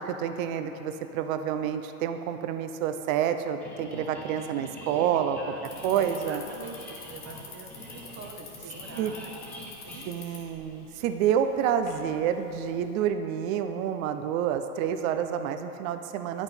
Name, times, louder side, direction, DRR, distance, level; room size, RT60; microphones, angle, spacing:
voice 1, 0.0-5.5 5.8-6.4 9.0-9.2 10.0-16.4, right 9 dB, 65° right, 8 dB, 0.7 m, -28 dB
sound 1, 3.6-11.0, left 1 dB, 5° left, 1.3 m, -45 dB
voice 2, 4.9-5.6 5.9-10.3, right 3 dB, 30° right, 2 dB, 1.0 m, -45 dB
Bicycle, 5.6-12.9, left 4 dB, 90° left, 2.1 m, -48 dB
10.0 x 6.1 x 4.4 m, 2.9 s
supercardioid pair, 120°, 44 cm